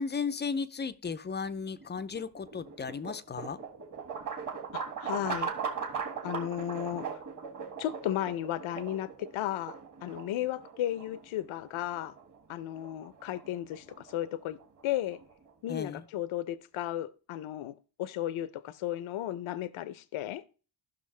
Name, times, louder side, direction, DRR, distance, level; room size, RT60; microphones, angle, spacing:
voice 1, 0.0-3.6 15.7-16.0, left 5 dB, 25° left, 0.4 m, -35 dB
sound 1, 1.8-15.9, right 6 dB, 40° right, 1.8 m, -40 dB
voice 2, 4.7-5.5 6.2-7.2 7.8-12.1 12.5-15.2 15.6-17.7 18.0-20.4, left 12 dB, 85° left, 0.7 m, -34 dB
14.5 x 6.1 x 3.2 m
wide cardioid pair, 150°, 47 cm